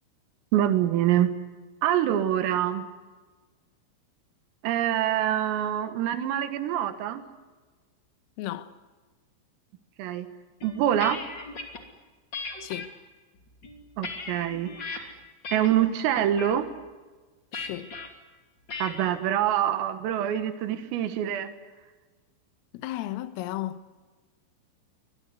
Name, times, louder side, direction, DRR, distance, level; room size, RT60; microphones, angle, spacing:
voice 1, 0.5-1.4 1.8-2.8 4.6-7.2 10.0-10.3 10.6-11.2 14.0-15.2 15.5-16.7 18.8-21.5, right 11 dB, 80° right, 4.2 m, -25 dB
voice 2, 8.4-8.7 12.6-12.9 17.5-18.0 22.7-23.8, left 14 dB, 85° left, 3.8 m, -34 dB
sound 1, 10.6-11.8 12.3-12.9 13.5-15.0 15.4-15.8 16.2-16.6 17.5-18.1 18.7-19.1, left 4 dB, 30° left, 2.4 m, -37 dB
24.5 x 21.0 x 9.8 m
omnidirectional pair, 6.0 m